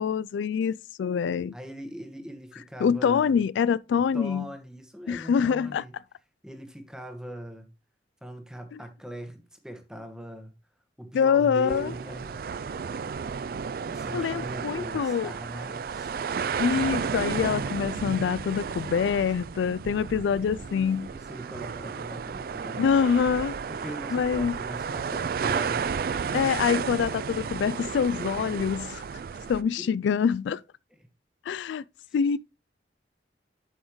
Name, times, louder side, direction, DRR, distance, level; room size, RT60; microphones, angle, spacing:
voice 1, 0.0-1.5 2.8-4.5 5.1-5.8 11.1-11.9 14.1-15.3 16.6-21.1 22.8-23.6 24.1-24.5 26.3-29.0 29.5-30.6 31.5-31.8 32.1-32.4, left 6 dB, 85° left, 0.3 m, -25 dB
voice 2, 1.5-3.4 3.9-5.9 6.4-7.7 8.2-10.5 11.0-12.4 13.6-16.2 20.5-22.9 23.7-25.9 29.5-29.9 30.9-31.0, right 1 dB, 5° right, 1.3 m, -41 dB
sound 1, 11.7-29.6, right 6 dB, 55° right, 0.3 m, -33 dB
8.5 x 6.3 x 3.1 m
head